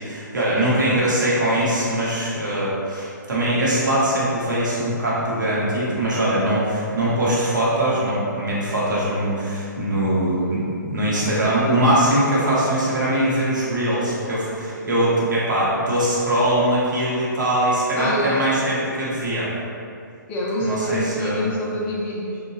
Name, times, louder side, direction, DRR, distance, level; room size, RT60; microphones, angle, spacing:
voice 1, 0.0-19.5 20.6-21.5, right 1 dB, 70° right, -7 dB, 0.8 m, -22 dB
voice 2, 18.0-18.5 20.3-22.4, left 1 dB, 15° left, -4 dB, 0.3 m, -26 dB
2.9 x 2.1 x 2.6 m, 2.5 s
figure-of-eight pair, 130°, 11 cm